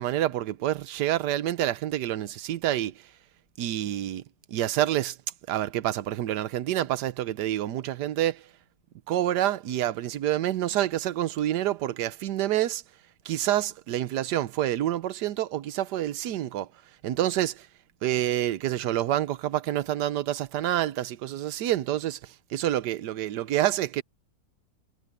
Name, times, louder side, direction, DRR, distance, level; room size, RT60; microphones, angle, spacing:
voice 1, 0.0-2.9 3.6-4.2 4.5-5.2 5.5-8.4 9.1-12.8 13.2-16.7 17.0-17.7 18.0-24.0, right 13 dB, 70° right, 1.3 m, -27 dB
omnidirectional pair, 1.9 m